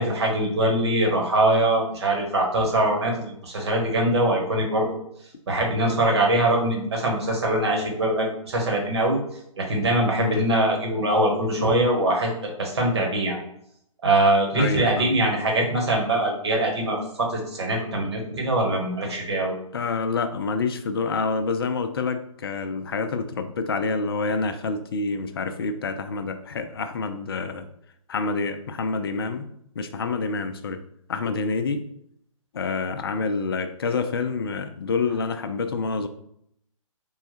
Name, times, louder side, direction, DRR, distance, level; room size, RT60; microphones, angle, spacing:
voice 1, 0.0-5.0 5.5-9.2 9.6-13.4 14.0-19.5, right 1 dB, 50° right, 0 dB, 1.2 m, -23 dB
voice 2, 14.5-15.1 19.7-27.7 28.1-29.5 29.8-30.8 31.1-31.8 32.5-36.1, left 4 dB, 45° left, 10 dB, 0.4 m, -27 dB
3.7 x 2.1 x 4.1 m, 0.74 s
figure-of-eight pair, 130°, 18 cm